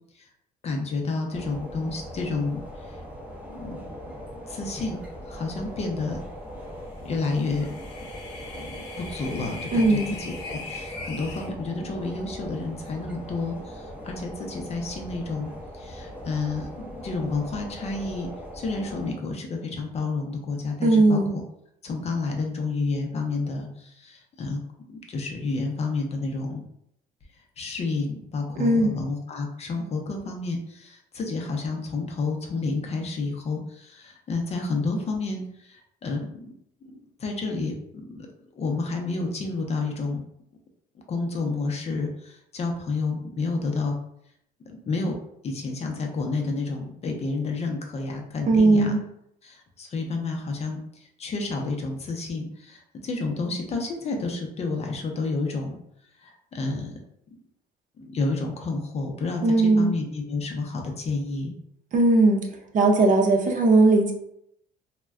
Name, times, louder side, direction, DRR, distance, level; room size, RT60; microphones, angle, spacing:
voice 1, 0.6-3.0 3.5-3.8 4.5-5.0 5.3-6.2 7.0-7.7 8.5-18.3 18.5-21.4 21.8-24.6 24.9-26.6 27.6-36.5 36.8-38.3 38.5-40.2 41.1-44.0 44.7-45.1 45.4-49.0 49.4-55.8 56.2-57.0 58.0-61.5, left 3 dB, 40° left, 2 dB, 0.6 m, -30 dB
sound 1, 1.3-19.1, equal, 10° right, 0.6 m, -40 dB
sound 2, 7.2-11.5, left 3 dB, 85° left, 0.5 m, -40 dB
voice 2, 9.7-10.1 20.8-21.3 28.6-29.0 48.5-49.0 59.4-59.9 61.9-62.4 62.7-64.1, right 2 dB, 50° right, 1 dB, 0.6 m, -18 dB
2.2 x 2.1 x 3.4 m, 0.75 s
cardioid pair, 110°, 17 cm